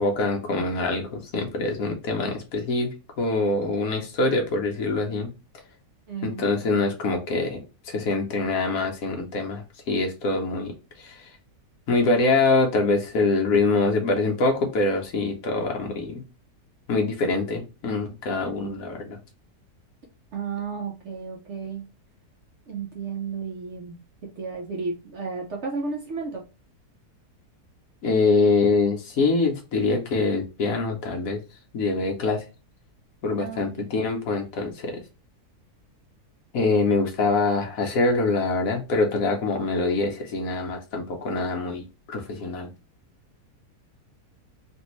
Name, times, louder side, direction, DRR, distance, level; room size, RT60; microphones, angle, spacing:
voice 1, 0.0-2.9 3.2-5.3 6.2-10.7 11.0-11.3 11.9-16.2 16.9-19.2 28.0-31.4 31.7-32.4 33.2-35.0 36.5-42.7, left 3 dB, 65° left, 2 dB, 1.1 m, -24 dB
voice 2, 6.1-6.5 18.4-18.8 20.3-21.9 22.7-26.4 33.4-33.7, right 5 dB, 55° right, 0 dB, 0.9 m, -33 dB
3.3 x 2.6 x 3.0 m, 0.30 s
omnidirectional pair, 1.7 m